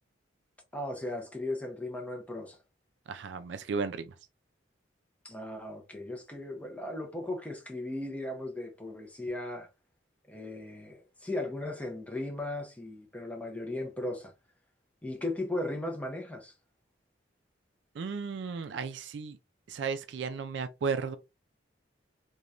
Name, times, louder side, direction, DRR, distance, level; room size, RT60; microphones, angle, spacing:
voice 1, 0.7-2.6 5.2-9.7 10.3-14.3 15.0-16.5, left 1 dB, 5° left, 0.5 m, -37 dB
voice 2, 3.1-4.1 18.0-19.4 19.7-21.2, right 5 dB, 70° right, 0.3 m, -34 dB
3.0 x 2.2 x 2.4 m
head